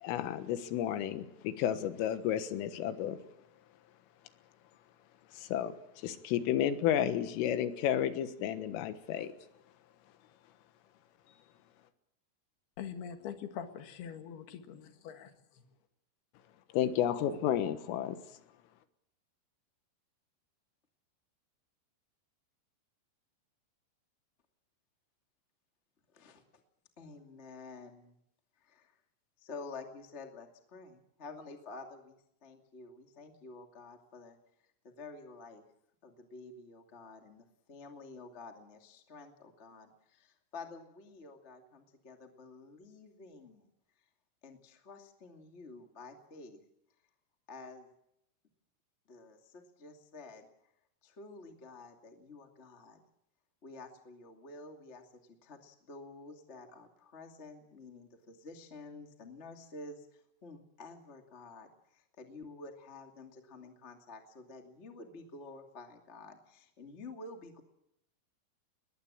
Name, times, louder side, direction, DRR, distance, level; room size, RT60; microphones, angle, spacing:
voice 1, 0.0-3.2 5.3-9.3 16.7-18.2, left 10 dB, 90° left, 10 dB, 4.0 m, -32 dB
voice 2, 12.8-15.3, left 8 dB, 60° left, 7 dB, 3.3 m, -43 dB
voice 3, 26.1-26.6 27.0-28.2 28.6-28.9 29.4-32.1 32.4-34.4 34.8-35.6 36.0-43.7 44.4-46.6 47.5-47.9 49.1-50.5 51.0-53.0 53.6-67.6, left 3 dB, 30° left, 4 dB, 1.3 m, -50 dB
21.0 x 19.5 x 8.7 m, 0.78 s
omnidirectional pair, 5.7 m